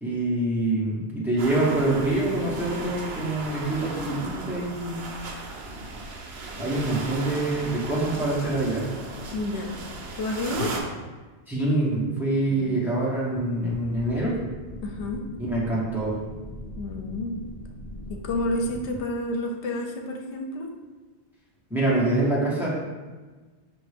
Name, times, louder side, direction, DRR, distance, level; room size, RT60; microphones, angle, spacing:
voice 1, 0.0-5.0 6.6-8.8 11.5-14.4 15.4-16.2 21.7-22.7, right 2 dB, ahead, -6 dB, 0.8 m, -25 dB
sound 1, 1.4-10.8, right 2 dB, 70° right, 0.9 m, -36 dB
voice 2, 9.3-9.9 10.1-10.8 12.5-12.8 14.7-15.3 16.8-17.4 18.1-20.7, left 1 dB, 85° left, 2 dB, 0.9 m, -30 dB
sound 2, 13.9-19.0, left 1 dB, 45° left, 0.5 m, -40 dB
5.8 x 2.4 x 3.3 m, 1.3 s
omnidirectional pair, 1.1 m